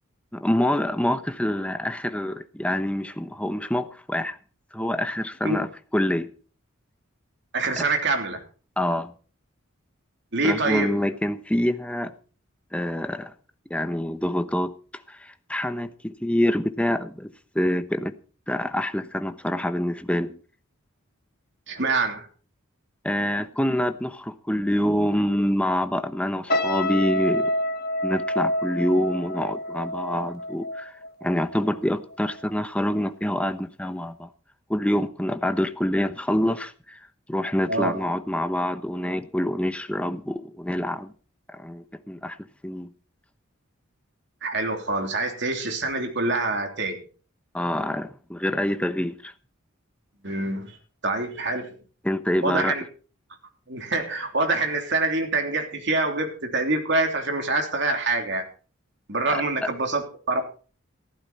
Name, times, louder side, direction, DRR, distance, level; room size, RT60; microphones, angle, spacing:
voice 1, 0.3-4.4 4.7-5.7 5.9-6.3 7.8-7.9 8.8-9.1 10.4-12.1 12.7-13.3 13.7-14.8 15.1-17.3 17.5-18.1 18.5-20.4 23.0-27.5 28.0-34.3 34.7-41.1 41.5-42.4 42.6-42.9 47.5-49.3 52.0-52.7 59.3-59.4, left 1 dB, 5° left, 9 dB, 0.9 m, -26 dB
voice 2, 7.5-8.4 10.3-11.0 21.7-22.3 37.7-38.0 44.4-47.0 50.2-50.8 51.0-51.7 52.4-52.8 53.7-58.4 59.1-60.6, right 2 dB, 55° right, 4 dB, 3.2 m, -25 dB
sound 1, 26.5-31.8 32.1-32.4, left 1 dB, 45° left, 1.5 m, -28 dB
15.0 x 12.5 x 4.2 m, 0.40 s
head